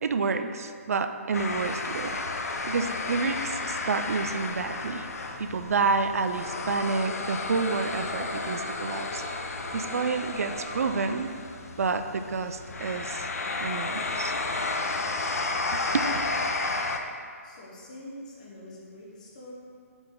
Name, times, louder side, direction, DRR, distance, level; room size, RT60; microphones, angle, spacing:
voice 1, 0.0-2.2 2.7-5.1 5.4-9.2 9.7-11.3 11.8-13.3 13.6-14.3 15.7-16.1, right 4 dB, 70° right, 9 dB, 0.4 m, -29 dB
sound 1, 1.3-17.0, left 3 dB, 70° left, 0.6 m, -32 dB
sound 2, 2.9-11.1, right 3 dB, 45° right, 1.0 m, -47 dB
voice 2, 17.4-19.5, left 1 dB, 30° left, -3 dB, 1.0 m, -45 dB
7.0 x 3.9 x 3.7 m, 2.2 s
hypercardioid pair, 175°, 8 cm